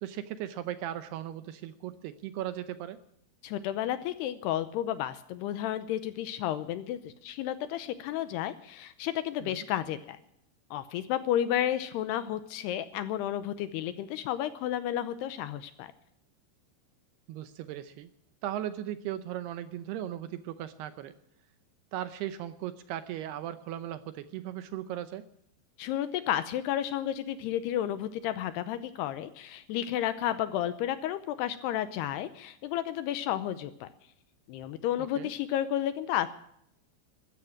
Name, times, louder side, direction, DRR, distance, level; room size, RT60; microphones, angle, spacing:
voice 1, 0.0-3.0 9.4-9.7 17.3-18.1 18.4-21.1 21.9-25.3 35.0-35.3, right 12 dB, 80° right, 11 dB, 2.5 m, -37 dB
voice 2, 3.4-10.2 10.7-15.9 25.8-33.9 34.5-36.4, left 11 dB, 80° left, 12 dB, 2.6 m, -32 dB
14.5 x 13.5 x 7.2 m, 0.73 s
omnidirectional pair, 5.2 m